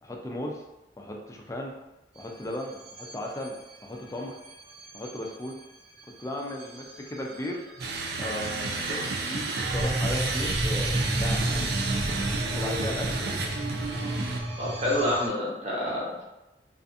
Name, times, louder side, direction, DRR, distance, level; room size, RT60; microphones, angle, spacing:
voice 1, 0.0-0.6 1.0-1.7 2.2-3.6 3.8-4.4 4.9-5.5 6.2-7.6 8.2-12.1 12.5-13.3, left 1 dB, 15° left, 0 dB, 0.3 m, -36 dB
sound 1, 2.2-15.3, right 1 dB, 85° right, 0.7 m, -34 dB
sound 2, 7.8-14.4, right 3 dB, 60° right, 0.3 m, -31 dB
voice 2, 14.6-16.2, left 1 dB, 40° right, -5 dB, 0.7 m, -28 dB
2.4 x 2.4 x 2.6 m, 0.96 s
head